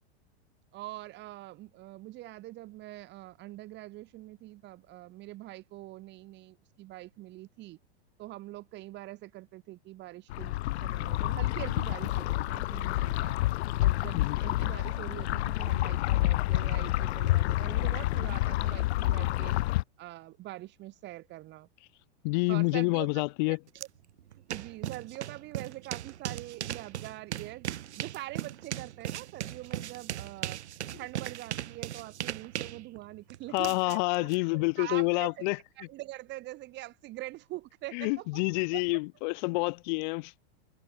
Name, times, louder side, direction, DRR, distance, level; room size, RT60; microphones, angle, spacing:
voice 1, 0.7-7.8 8.2-13.4 13.8-19.6 20.0-21.7 22.5-23.1 23.4-23.9 24.5-27.7 28.0-30.6 31.0-35.5 35.8-38.4 38.7-39.0, right 17 dB, 35° right, 2.8 m, -44 dB
sound 1, 10.3-19.8, left 17 dB, 75° left, 0.6 m, -28 dB
voice 2, 22.2-23.6 33.5-35.6 37.9-40.3, left 28 dB, 45° left, 0.8 m, -28 dB
sound 2, 23.8-23.9 24.2-34.4, right 12 dB, 85° right, 4.0 m, -38 dB
supercardioid pair, 145°, 33 cm